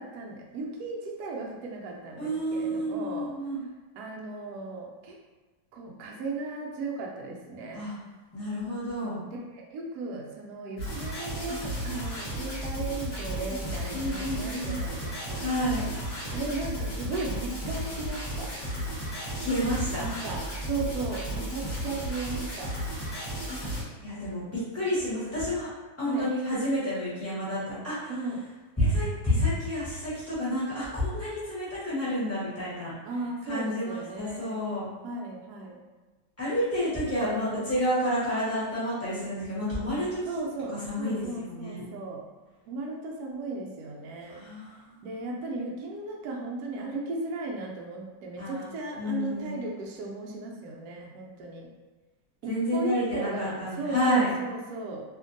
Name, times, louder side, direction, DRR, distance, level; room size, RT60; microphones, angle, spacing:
voice 1, 0.0-3.3 3.9-5.2 5.7-7.8 9.3-15.5 16.3-18.5 19.9-22.7 26.1-26.3 28.1-28.4 33.0-34.6 35.0-35.8 37.2-37.7 40.3-42.3 42.7-44.4 45.0-51.7 52.4-55.0, right 3 dB, 70° right, -1 dB, 0.9 m, -36 dB
voice 2, 2.2-3.6 7.7-7.9 8.3-9.2 13.9-14.8 15.4-15.8 19.3-20.1 24.0-25.7 26.0-28.1 28.8-32.9 33.5-34.8 36.4-40.2 40.7-41.9 44.3-44.7 48.4-48.7 49.0-49.6 52.5-54.3, equal, 10° left, -11 dB, 0.7 m, -29 dB
sound 1, 10.8-23.8, equal, 40° left, 1.2 m, -34 dB
2.8 x 2.5 x 2.5 m, 1.3 s
omnidirectional pair, 2.0 m